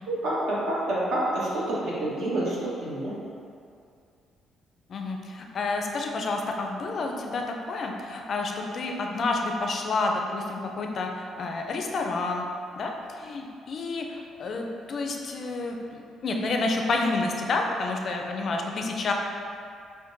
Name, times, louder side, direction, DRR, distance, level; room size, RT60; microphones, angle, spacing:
voice 1, 0.1-3.1, right 1 dB, 70° right, -7 dB, 1.1 m, -28 dB
voice 2, 4.9-11.1 11.4-12.5 12.8-12.9 13.2-19.1, left 3 dB, 50° left, 2 dB, 0.4 m, -29 dB
5.8 x 2.2 x 2.5 m, 2.4 s
cardioid pair, 110°, 0 cm